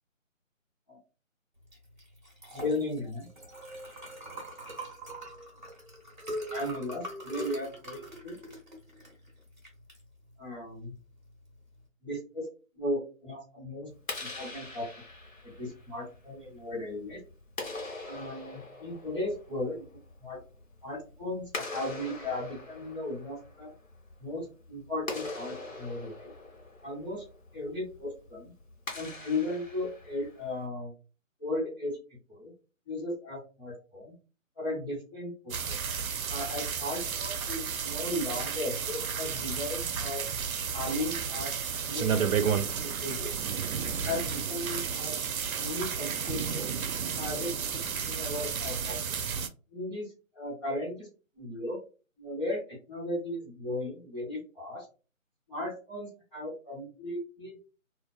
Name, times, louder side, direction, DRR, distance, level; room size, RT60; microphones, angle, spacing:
Liquid, 1.6-11.8, equal, 35° right, 1.0 m, -43 dB
voice 1, 2.5-3.3 6.5-8.4 10.4-10.9 12.0-12.5 12.7-13.9 14.2-14.9 15.4-17.2 18.1-19.8 20.2-20.4 20.8-23.7 24.2-26.3 26.8-27.2 27.5-28.5 28.9-30.9 31.4-32.0 32.3-32.5 32.8-34.1 34.6-35.8 36.3-40.2 40.7-41.5 41.8-42.5 42.7-43.3 44.0-45.2 45.5-46.7 47.1-49.1 49.7-51.1 51.3-51.8 52.2-54.8 55.5-57.6, left 1 dB, 20° left, -9 dB, 1.2 m, -36 dB
Clapping, 13.9-30.7, left 2 dB, 70° left, 1.1 m, -43 dB
sound 1, 35.5-49.5, right 7 dB, 85° right, 0.5 m, -32 dB
2.4 x 2.3 x 2.3 m, 0.34 s
figure-of-eight pair, 175°, 41 cm